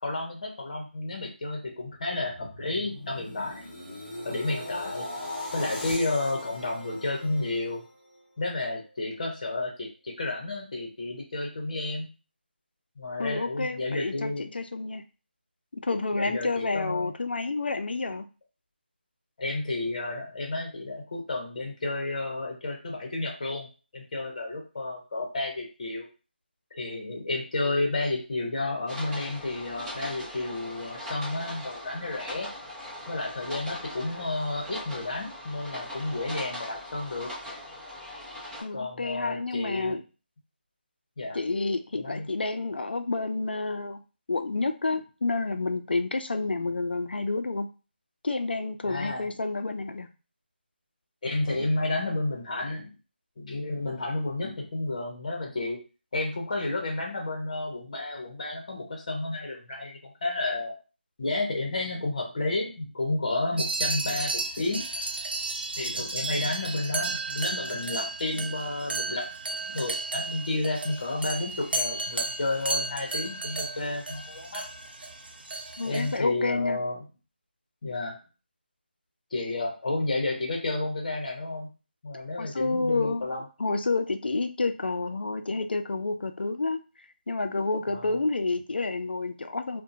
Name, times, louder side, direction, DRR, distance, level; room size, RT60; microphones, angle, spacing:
voice 1, 0.0-3.6 4.2-5.1 5.5-7.8 8.4-12.1 13.0-14.5 16.1-17.1 19.4-26.1 26.7-32.5 33.1-37.3 38.7-40.0 41.2-41.4 41.9-42.3 48.8-49.3 51.2-52.9 53.4-55.8 56.1-60.7 61.2-64.8 65.8-69.2 69.6-74.6 75.8-77.0 77.8-78.2 79.3-81.7 82.0-83.4 87.9-88.2, left 2 dB, 40° left, 1 dB, 0.9 m, -31 dB
sound 1, 1.9-8.2 8.6-8.9, left 1 dB, 20° left, 1.3 m, -39 dB
voice 2, 13.2-15.0 15.7-18.3 38.6-40.0 41.3-44.0 44.3-47.7 48.2-50.1 75.8-76.8 82.4-83.3 83.6-86.8 87.3-89.8, left 3 dB, 65° left, 7 dB, 0.4 m, -29 dB
sound 2, 28.9-38.6, left 1 dB, 10° right, 0.7 m, -40 dB
sound 3, 63.6-76.2, right 3 dB, 65° right, 0.4 m, -33 dB
2.7 x 2.2 x 2.6 m, 0.33 s
figure-of-eight pair, 165°, 6 cm